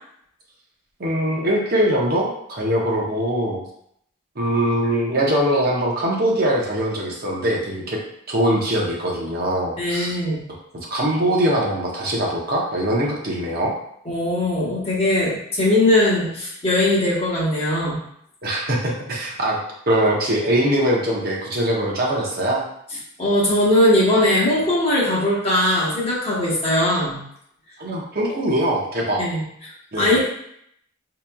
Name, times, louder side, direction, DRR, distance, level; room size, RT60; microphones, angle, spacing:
voice 1, 1.0-3.6 4.4-8.0 8.3-10.2 10.7-13.7 18.4-19.6 19.9-22.6 27.8-29.3 29.9-30.2, right 1 dB, 45° right, -3 dB, 0.7 m, -22 dB
voice 2, 9.8-10.4 14.0-18.0 23.2-27.2 29.2-30.2, left 1 dB, 30° left, -6 dB, 1.0 m, -20 dB
4.7 x 2.9 x 2.2 m, 0.71 s
head